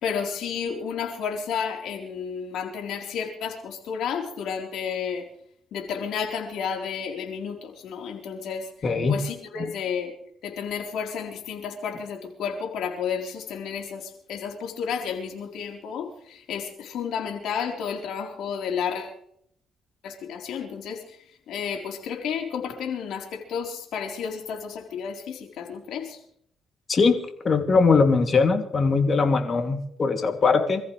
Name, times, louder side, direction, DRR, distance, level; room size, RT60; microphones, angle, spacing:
voice 1, 0.0-5.2 5.7-8.7 9.1-10.1 10.4-19.1 20.0-21.0 21.5-26.2, left 7 dB, 80° left, 3 dB, 4.0 m, -31 dB
voice 2, 8.8-9.2 9.6-9.7 26.9-27.2 27.4-30.8, left 4 dB, 40° left, 6 dB, 2.7 m, -21 dB
27.0 x 14.5 x 3.3 m, 0.67 s
cardioid pair, 90°, 0 cm